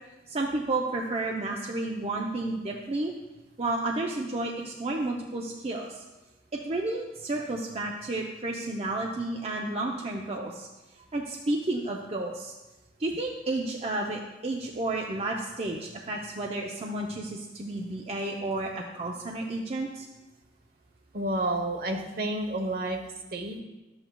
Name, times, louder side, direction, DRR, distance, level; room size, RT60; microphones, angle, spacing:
voice 1, 0.3-3.1 3.6-6.0 6.6-10.7 11.1-12.5 13.0-20.1, right 2 dB, 35° right, 0 dB, 0.5 m, -31 dB
voice 2, 21.1-23.0 23.3-23.6, right 1 dB, 55° right, 4 dB, 0.9 m, -30 dB
11.5 x 7.9 x 2.3 m, 1.1 s
head